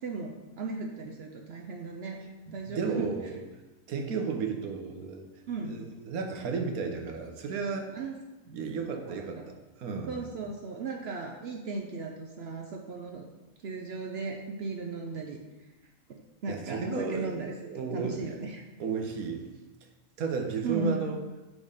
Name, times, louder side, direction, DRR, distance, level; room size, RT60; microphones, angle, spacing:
voice 1, 0.0-2.2 2.5-3.1 5.5-5.7 7.9-8.1 9.1-9.4 10.1-13.3 13.6-15.4 16.1-18.6 20.6-21.0, right 4 dB, 60° right, 1 dB, 0.7 m, -36 dB
voice 2, 2.5-3.4 3.9-5.2 5.6-7.9 8.5-10.2 16.5-18.2 18.8-19.5 20.2-21.2, right 5 dB, 80° right, 4 dB, 1.3 m, -33 dB
6.2 x 3.6 x 4.9 m, 1.1 s
omnidirectional pair, 1.5 m